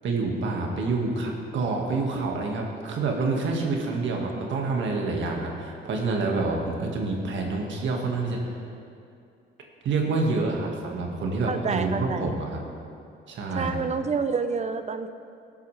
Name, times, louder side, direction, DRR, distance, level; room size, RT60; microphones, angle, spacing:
voice 1, 0.0-8.6 9.8-12.6 13.3-13.7, right 3 dB, 70° right, 0 dB, 1.9 m, -27 dB
voice 2, 10.3-11.0 11.5-12.3 13.6-15.1, right 5 dB, 35° right, 9 dB, 0.6 m, -29 dB
17.5 x 8.2 x 3.4 m, 2.5 s
cardioid pair, 90°, 20 cm